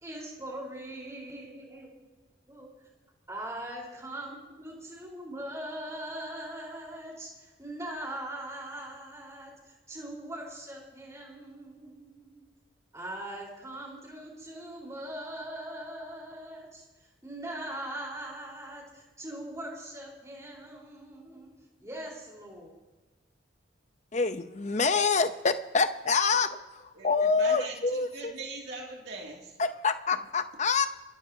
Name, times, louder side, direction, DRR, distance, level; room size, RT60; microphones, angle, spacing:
voice 1, 0.0-1.9 2.5-2.7 3.3-12.4 12.9-16.9 17.2-21.5 21.8-22.7, right 1 dB, 15° right, -2 dB, 4.2 m, -41 dB
voice 2, 24.1-28.3 29.6-30.9, left 4 dB, 35° left, 10 dB, 0.7 m, -26 dB
voice 3, 26.9-27.7 28.1-29.5, right 3 dB, 55° right, -2 dB, 2.5 m, -40 dB
26.0 x 14.0 x 2.8 m, 1.2 s
head